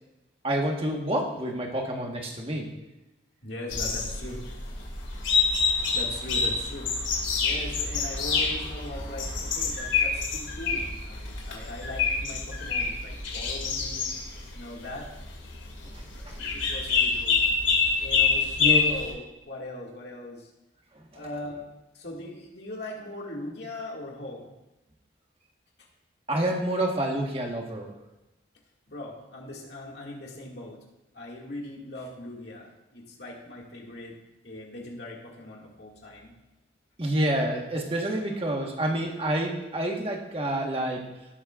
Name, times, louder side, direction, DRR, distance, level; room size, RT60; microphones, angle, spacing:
voice 1, 0.4-2.7 15.9-16.4 18.6-18.9 26.3-27.9 37.0-41.1, right 1 dB, 30° right, 1 dB, 1.4 m, -28 dB
voice 2, 3.4-4.4 5.9-6.9 7.3-14.1 14.5-15.1 16.1-17.4 18.0-20.5 21.1-21.7 21.9-24.5 28.9-30.8 31.1-34.2 34.4-36.3 38.0-38.2, left 1 dB, 60° left, -2 dB, 2.2 m, -40 dB
sound 1, 3.7-19.1, left 5 dB, 80° left, 2.2 m, -27 dB
17.5 x 7.4 x 2.5 m, 0.98 s
head